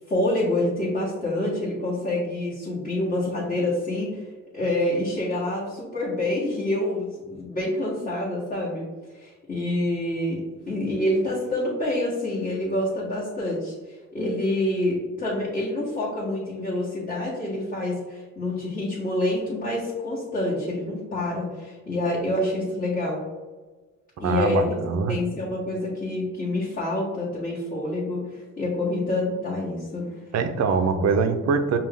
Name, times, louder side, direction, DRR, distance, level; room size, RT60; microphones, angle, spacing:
voice 1, 0.1-4.2 4.5-8.9 9.1-23.2 24.2-24.7 25.1-30.1, left 1 dB, 25° left, -9 dB, 1.4 m, -27 dB
voice 2, 24.2-25.2 30.3-31.8, right 4 dB, 60° right, 8 dB, 0.6 m, -23 dB
5.3 x 2.4 x 3.5 m, 1.3 s
cardioid pair, 90°, 30 cm